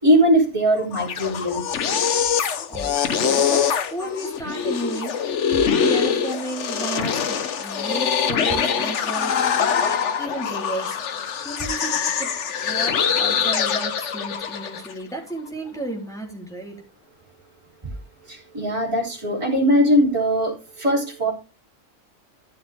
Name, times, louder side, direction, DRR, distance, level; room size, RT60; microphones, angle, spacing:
voice 1, 0.0-1.6 18.3-21.3, equal, 20° right, -4 dB, 3.7 m, -20 dB
sound 1, 0.8-14.9, left 7 dB, 65° left, 1.2 m, -23 dB
voice 2, 2.7-5.3 5.9-11.1 11.4-12.3 12.6-16.8, right 1 dB, ahead, -1 dB, 3.4 m, -33 dB
13.5 x 7.2 x 3.6 m, 0.30 s
omnidirectional pair, 1.4 m